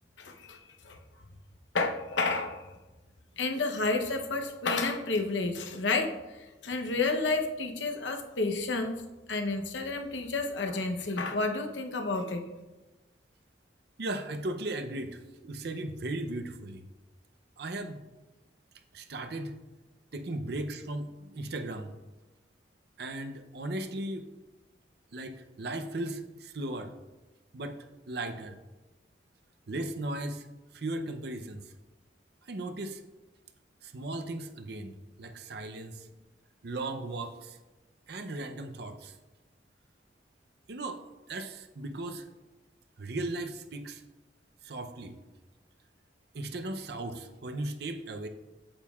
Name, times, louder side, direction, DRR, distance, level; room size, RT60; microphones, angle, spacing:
voice 1, 0.2-0.6 0.8-1.0 1.7-2.6 3.4-6.1 6.6-9.0 9.3-12.4, left 3 dB, 90° left, 4 dB, 0.8 m, -30 dB
voice 2, 14.0-16.8 17.6-18.0 18.9-19.6 20.1-21.9 23.0-24.3 25.1-26.9 27.5-27.8 28.1-28.6 29.7-30.5 30.7-31.7 32.4-33.0 33.8-36.1 36.6-37.6 38.1-39.1 40.7-41.0 41.3-42.3 43.0-44.0 44.6-45.1 46.3-48.3, right 2 dB, 60° right, 7 dB, 0.6 m, -37 dB
8.7 x 7.2 x 2.4 m, 1.1 s
head